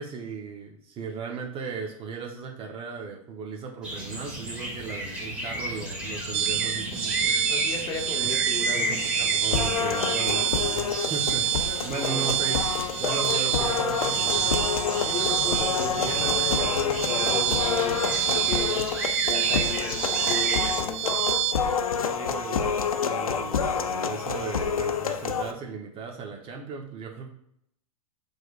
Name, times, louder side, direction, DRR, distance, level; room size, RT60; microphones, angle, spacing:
voice 1, 0.0-7.4 8.2-8.3 8.8-11.5 11.8-14.6 21.2-21.3 22.0-27.3, right 5 dB, 30° right, 1 dB, 0.9 m, -36 dB
sound 1, 3.8-20.8, equal, 5° right, 1.7 m, -33 dB
sound 2, 6.3-21.5, right 11 dB, 50° right, 0.5 m, -27 dB
voice 2, 7.5-9.0 12.0-12.3 15.0-18.0 18.3-18.9 19.2-21.3, left 4 dB, 25° left, 0 dB, 1.1 m, -35 dB
sound 3, 9.5-25.5, left 6 dB, 90° left, 0.5 m, -28 dB
5.9 x 3.4 x 2.4 m, 0.73 s
hypercardioid pair, 100°, 18 cm